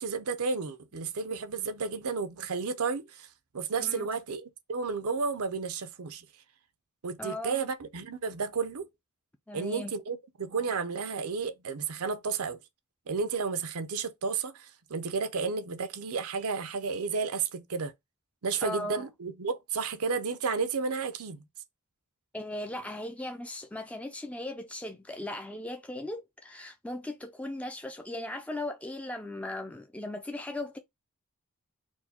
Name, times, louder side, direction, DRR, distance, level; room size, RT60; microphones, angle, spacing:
voice 1, 0.0-3.3 3.5-6.2 7.0-8.9 9.5-12.6 13.1-17.9 18.4-21.4, right 5 dB, 80° right, 0.7 m, -32 dB
voice 2, 7.2-7.7 9.5-9.9 18.6-19.1 22.3-30.8, left 1 dB, 5° left, 0.4 m, -38 dB
4.5 x 2.2 x 4.1 m
head